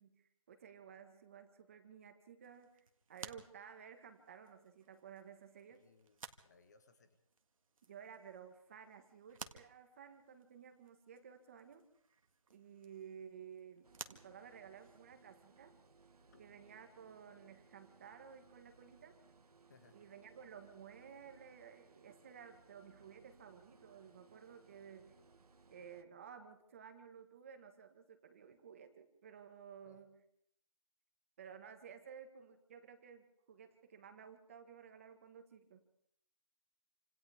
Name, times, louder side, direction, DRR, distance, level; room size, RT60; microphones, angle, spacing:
voice 1, 0.0-2.8 3.1-5.8 7.9-11.8 12.5-15.7 16.4-19.2 19.9-25.1 25.7-30.1 31.4-35.8, right 7 dB, 20° right, 7 dB, 1.6 m, -55 dB
sound 1, 2.4-15.3, right 4 dB, 60° right, 2.0 m, -57 dB
voice 2, 5.7-7.2 16.3-16.4 19.7-20.0 29.8-30.0, left 4 dB, 30° left, 9 dB, 1.5 m, -66 dB
sound 2, 13.8-26.0, right 4 dB, 80° right, 1.6 m, -66 dB
28.5 x 26.5 x 3.6 m, 0.71 s
hypercardioid pair, 170°, 19 cm